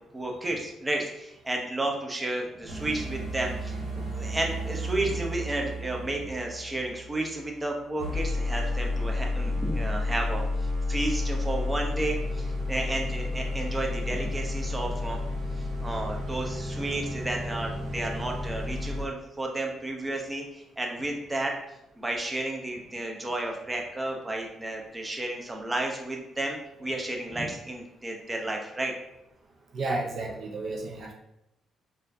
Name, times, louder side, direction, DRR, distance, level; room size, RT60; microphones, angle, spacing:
voice 1, 0.0-15.2 15.6-21.5 22.0-28.9, right 2 dB, 20° right, 1 dB, 0.7 m, -32 dB
sound 1, 2.7-7.6 8.0-19.0, left 2 dB, 70° right, 1.3 m, -31 dB
voice 2, 29.7-31.1, right 2 dB, 55° right, 0 dB, 0.5 m, -32 dB
4.2 x 2.6 x 2.6 m, 0.84 s
cardioid pair, 90°, 0 cm